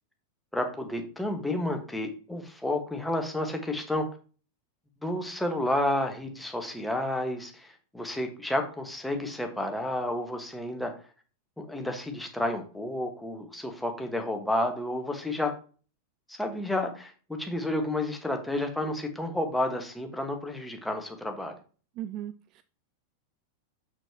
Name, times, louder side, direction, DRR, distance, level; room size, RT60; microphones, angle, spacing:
voice 1, 0.5-4.1 5.0-10.9 11.6-15.5 16.3-21.5, left 1 dB, 5° left, 4 dB, 1.4 m, -31 dB
voice 2, 22.0-22.6, right 11 dB, 40° right, 13 dB, 0.3 m, -37 dB
6.4 x 6.2 x 2.9 m, 0.37 s
figure-of-eight pair, 90°, 0 cm